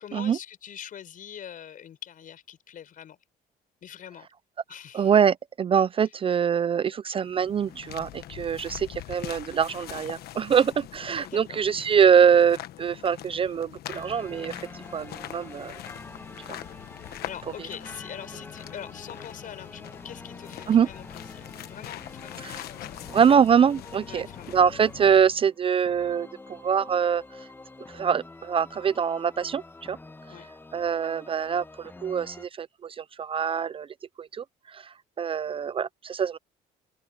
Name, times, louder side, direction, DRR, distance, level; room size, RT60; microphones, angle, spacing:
voice 1, 0.0-3.2 3.8-4.3 4.7-5.1 6.0-6.1 11.2-11.6 17.2-23.1 24.1-24.6 30.3-30.5, left 9 dB, 55° left, 5.8 m, -43 dB
voice 2, 4.9-14.5 14.9-15.7 16.5-16.6 20.7-20.9 23.1-24.3 24.5-27.2 27.9-30.0 30.7-33.9 34.2-34.4 34.7-34.8 35.2-36.4, right 7 dB, 30° right, 0.4 m, -24 dB
sound 1, 7.2-25.4, left 13 dB, 70° left, 1.3 m, -43 dB
sound 2, 13.9-32.5, left 2 dB, 10° left, 1.2 m, -46 dB
open air
cardioid pair, 110°, 17 cm